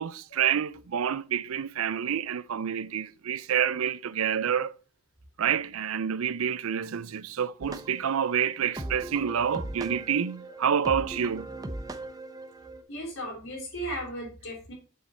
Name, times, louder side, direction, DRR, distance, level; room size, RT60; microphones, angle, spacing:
voice 1, 0.0-4.7 5.4-11.5, right 8 dB, 85° right, 0.5 m, -28 dB
sound 1, 7.6-12.8, right 2 dB, 15° right, 0.6 m, -39 dB
voice 2, 12.9-14.7, equal, 70° left, 3.8 m, -36 dB
6.5 x 5.6 x 4.2 m
head